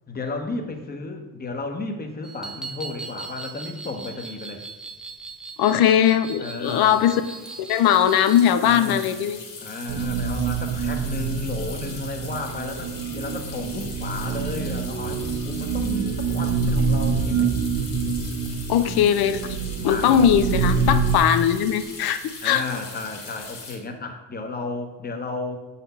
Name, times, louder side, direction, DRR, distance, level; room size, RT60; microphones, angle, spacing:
voice 1, 0.1-4.6 6.4-7.0 8.6-9.1 9.6-17.5 19.9-20.3 22.4-25.6, left 3 dB, 25° left, 5 dB, 1.0 m, -33 dB
sound 1, 2.2-8.5, right 4 dB, ahead, 0.3 m, -39 dB
sound 2, 4.7-4.8 4.9-5.2 6.6-23.8, left 4 dB, 90° left, 2.0 m, -41 dB
voice 2, 5.6-7.2 7.6-9.4 18.7-19.6 19.8-22.6, left 9 dB, 65° left, 12 dB, 0.6 m, -20 dB
sound 3, 9.9-21.2, right 5 dB, 70° right, 1.2 m, -26 dB
6.8 x 4.1 x 5.4 m, 1.1 s
cardioid pair, 100°, 41 cm